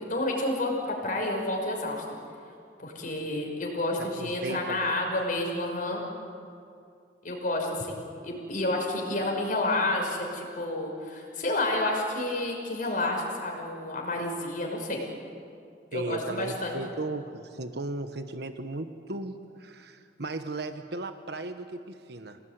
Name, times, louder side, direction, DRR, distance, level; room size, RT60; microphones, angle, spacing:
voice 1, 0.0-2.0 2.8-6.0 7.2-15.0 15.9-16.8, left 2 dB, 50° left, 0 dB, 5.9 m, -30 dB
voice 2, 4.0-5.2 15.9-22.4, right 2 dB, 65° right, 8 dB, 1.2 m, -36 dB
28.0 x 19.0 x 9.5 m, 2.4 s
head